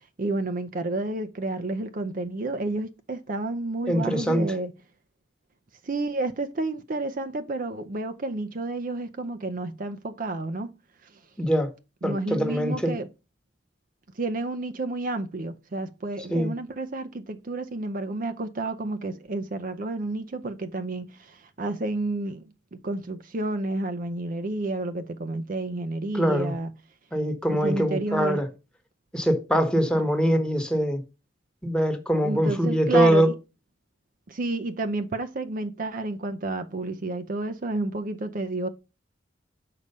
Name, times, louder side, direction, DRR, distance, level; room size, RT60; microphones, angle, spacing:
voice 1, 0.2-4.7 5.8-10.7 12.0-13.1 14.2-22.4 22.7-26.7 27.6-28.4 32.2-33.3 34.3-38.7, right 2 dB, 50° right, 0.6 m, -30 dB
voice 2, 3.9-4.5 11.4-11.7 12.0-12.9 16.3-16.5 26.1-26.5 27.1-28.5 29.1-31.0 31.6-33.3, equal, 5° left, 1.1 m, -23 dB
6.7 x 4.8 x 5.4 m
head